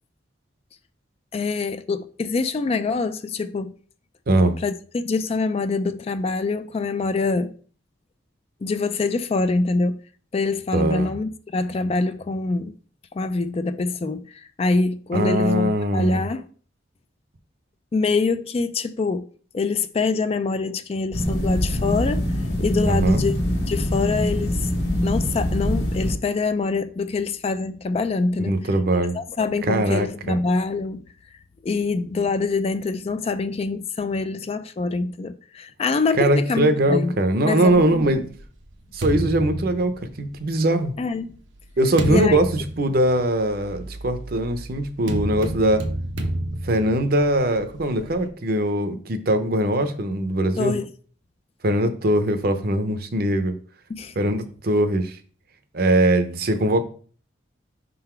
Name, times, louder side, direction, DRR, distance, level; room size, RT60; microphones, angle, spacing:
voice 1, 1.3-3.8 4.6-7.5 8.6-10.0 10.3-12.7 13.1-16.4 17.9-19.3 19.5-22.3 22.6-23.3 23.7-24.7 25.0-28.6 29.1-31.1 31.6-37.1 37.4-38.1 41.0-41.3 42.1-42.4 50.6-50.9 53.9-54.1, left 3 dB, 30° left, 0.3 m, -25 dB
voice 2, 4.3-4.6 10.7-11.1 15.1-16.2 22.8-23.2 28.4-29.2 29.7-30.4 36.2-38.3 38.9-40.9 41.8-45.9 46.6-50.8 51.6-53.6 54.2-55.2 55.7-56.8, right 1 dB, 50° right, 0.7 m, -21 dB
sound 1, 21.1-26.1, equal, 60° left, 1.3 m, -24 dB
sound 2, 37.7-40.5 41.2-48.3, right 1 dB, 80° right, 0.8 m, -31 dB
5.5 x 3.9 x 4.4 m
head